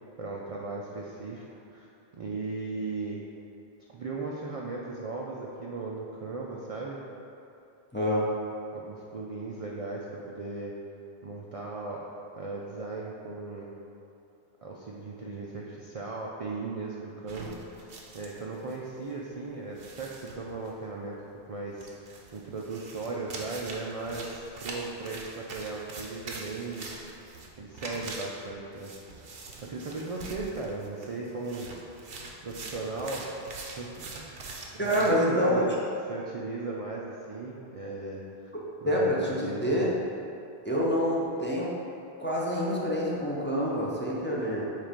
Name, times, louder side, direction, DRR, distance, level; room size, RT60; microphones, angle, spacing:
voice 1, 0.2-1.4 1.7-1.9 2.1-3.2 3.9-7.0 8.7-10.7 11.2-12.0 12.3-13.7 14.6-17.9 18.1-21.2 21.5-26.9 27.6-29.3 29.6-31.7 32.4-33.3 33.8-34.5 34.7-35.7 36.1-38.2 38.8-39.9, right 3 dB, 50° right, -3 dB, 0.4 m, -37 dB
voice 2, 7.9-8.3 34.8-35.7 38.9-39.9 40.6-41.8 42.2-44.6, equal, 15° left, -5 dB, 0.6 m, -27 dB
sound 1, 17.3-18.8 19.1-19.2 19.8-20.7 21.8-35.2, right 3 dB, 65° right, 0.9 m, -43 dB
7.4 x 2.5 x 5.0 m, 2.7 s
omnidirectional pair, 1.0 m